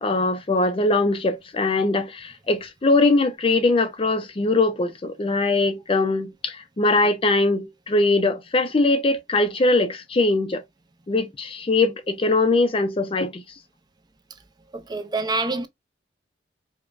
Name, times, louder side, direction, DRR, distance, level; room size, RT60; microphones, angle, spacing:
voice 1, 0.0-10.6 11.1-13.4, left 2 dB, 30° left, 0.4 m, -21 dB
voice 2, 14.7-15.7, right 3 dB, 25° right, 0.5 m, -26 dB
4.9 x 2.1 x 2.4 m
head